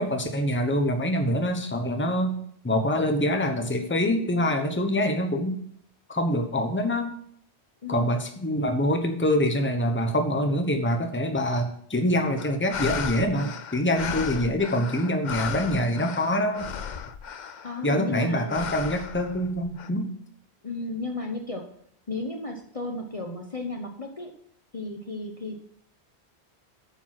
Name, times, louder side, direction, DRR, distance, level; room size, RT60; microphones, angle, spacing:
voice 1, 0.0-2.4 2.6-5.6 6.1-7.1 7.9-16.7 17.8-20.1, equal, 10° left, 5 dB, 1.0 m, -25 dB
sound 1, 12.4-17.9 18.5-19.9, left 7 dB, 50° left, 0.7 m, -35 dB
voice 2, 17.6-18.6 20.6-21.8 22.1-24.3 24.7-25.6, left 3 dB, 35° left, 3 dB, 1.0 m, -34 dB
8.9 x 7.1 x 6.0 m, 0.66 s
omnidirectional pair, 1.1 m